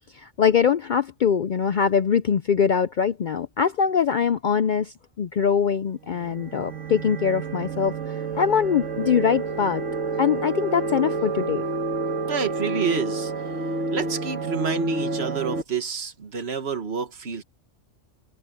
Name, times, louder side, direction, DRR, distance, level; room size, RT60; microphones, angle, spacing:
voice 1, 0.1-9.8 10.2-11.6, left 7 dB, 55° left, 0.5 m, -23 dB
sound 1, 6.0-15.6, right 3 dB, 85° right, 2.1 m, -29 dB
voice 2, 12.3-13.3 13.9-17.4, right 6 dB, 60° right, 1.8 m, -28 dB
omnidirectional pair, 1.2 m